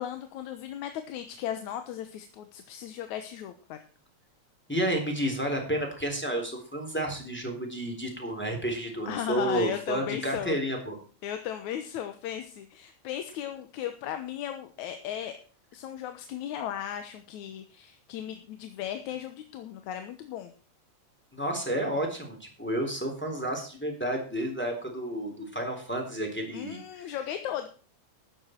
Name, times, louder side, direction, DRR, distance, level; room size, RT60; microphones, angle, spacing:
voice 1, 0.0-3.8 9.1-10.6 11.2-15.4 15.7-20.5 26.5-27.7, left 10 dB, 80° left, 8 dB, 2.4 m, -36 dB
voice 2, 4.7-11.0 21.3-27.2, right 1 dB, 5° left, 2 dB, 3.3 m, -31 dB
13.0 x 9.9 x 4.5 m, 0.38 s
omnidirectional pair, 3.4 m